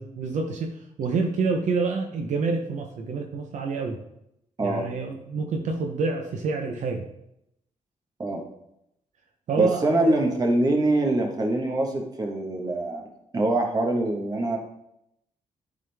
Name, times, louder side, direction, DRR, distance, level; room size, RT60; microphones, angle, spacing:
voice 1, 0.0-4.0 4.6-7.0 9.5-10.2, right 4 dB, 65° right, 3 dB, 0.8 m, -28 dB
voice 2, 9.6-13.1 13.3-14.6, right 2 dB, 30° right, 2 dB, 1.3 m, -24 dB
10.5 x 3.8 x 3.4 m, 0.79 s
cardioid pair, 125°, 13 cm